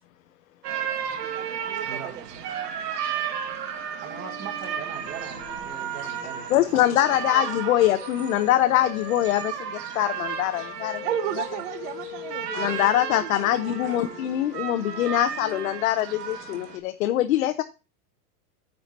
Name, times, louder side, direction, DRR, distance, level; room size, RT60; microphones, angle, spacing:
sound 1, 0.6-16.8, right 8 dB, 80° right, 2.0 m, -34 dB
voice 1, 1.3-2.2 2.6-2.7 11.0-12.8 13.1-14.0, right 10 dB, 50° right, 0.8 m, -34 dB
voice 2, 1.8-2.4 4.0-6.9 7.3-7.8 13.8-14.1, right 7 dB, 25° right, 1.5 m, -40 dB
Wind instrument woodwind instrument, 4.0-9.5 10.0-15.8, left 10 dB, 75° left, 1.5 m, -42 dB
voice 3, 6.5-11.0 12.5-17.6, left 13 dB, 55° left, 0.8 m, -23 dB
9.6 x 4.5 x 5.3 m
supercardioid pair, 170°, 47 cm